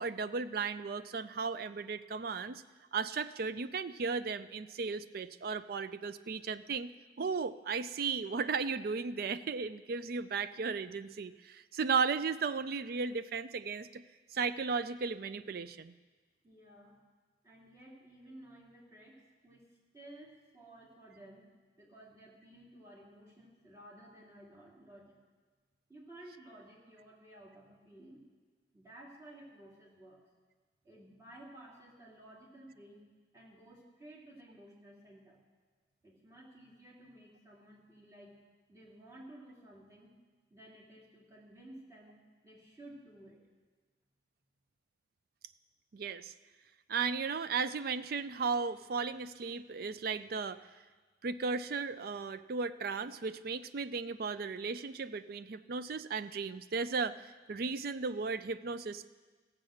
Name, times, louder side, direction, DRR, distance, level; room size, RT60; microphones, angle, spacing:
voice 1, 0.0-2.6 2.9-6.9 7.2-14.0 14.3-15.9 45.9-46.3 46.9-50.6 51.2-57.2 57.5-59.1, right 5 dB, 50° right, 13 dB, 0.4 m, -35 dB
voice 2, 16.4-17.0 17.4-19.7 19.9-25.2 25.9-28.2 28.7-30.2 30.8-33.1 33.3-35.4 36.0-38.4 38.7-40.1 40.5-43.4, right 1 dB, 15° right, -5 dB, 2.6 m, -55 dB
15.5 x 7.5 x 6.4 m, 1.4 s
head